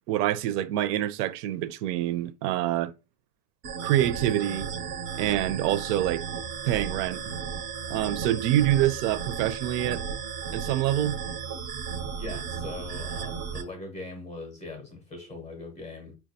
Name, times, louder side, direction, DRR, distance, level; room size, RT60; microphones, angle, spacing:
voice 1, 0.1-2.9 3.8-4.7 5.1-6.3 6.6-7.2 7.9-10.0 10.5-11.2, right 13 dB, 90° right, 0.6 m, -26 dB
sound 1, 3.6-13.6, right 6 dB, 40° right, 0.4 m, -34 dB
voice 2, 12.2-16.1, left 2 dB, 15° left, 0.5 m, -40 dB
4.6 x 2.2 x 2.6 m
supercardioid pair, 175°, 47 cm